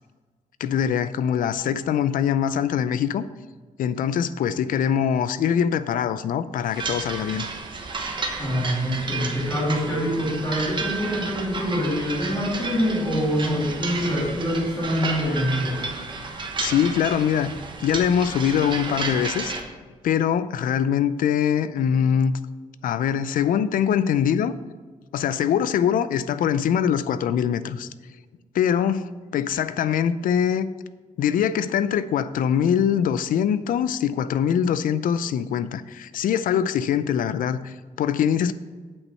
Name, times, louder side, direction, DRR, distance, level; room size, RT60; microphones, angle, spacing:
voice 1, 0.6-3.2 3.8-7.5 16.6-17.5 17.8-19.5 20.0-22.3 22.8-24.6 25.1-27.9 28.5-30.7 31.2-38.5, left 8 dB, 75° left, 0.5 m, -23 dB
sound 1, 6.7-19.6, right 4 dB, 35° right, 1.0 m, -32 dB
voice 2, 8.4-15.9, equal, 20° left, 2.8 m, -25 dB
8.0 x 6.2 x 4.4 m
cardioid pair, 140°, 14 cm